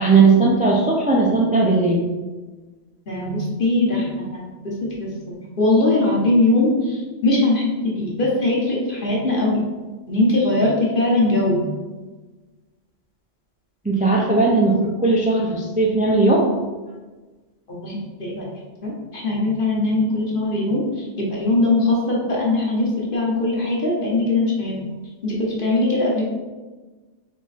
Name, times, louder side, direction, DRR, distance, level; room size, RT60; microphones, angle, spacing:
voice 1, 0.0-2.0 13.8-16.5, right 3 dB, 10° right, -3 dB, 0.3 m, -17 dB
voice 2, 3.1-4.7 5.0-5.1 5.6-9.6 10.1-11.6 17.8-18.5 18.8-20.8 21.2-24.8 25.2-26.3, left 2 dB, 50° left, -4 dB, 1.3 m, -20 dB
4.3 x 3.0 x 4.1 m, 1.3 s
omnidirectional pair, 1.2 m